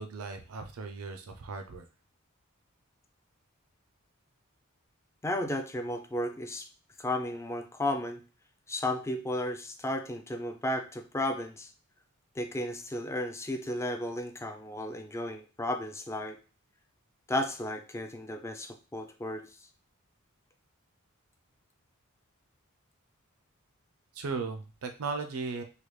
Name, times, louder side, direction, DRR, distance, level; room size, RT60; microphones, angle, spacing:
voice 1, 0.0-1.9 24.1-25.6, right 4 dB, 75° right, 6 dB, 0.5 m, -37 dB
voice 2, 5.2-6.7 7.0-8.2 8.7-11.7 12.4-16.4 17.3-19.5, left 1 dB, 15° left, 6 dB, 0.4 m, -34 dB
3.3 x 2.2 x 3.1 m, 0.33 s
head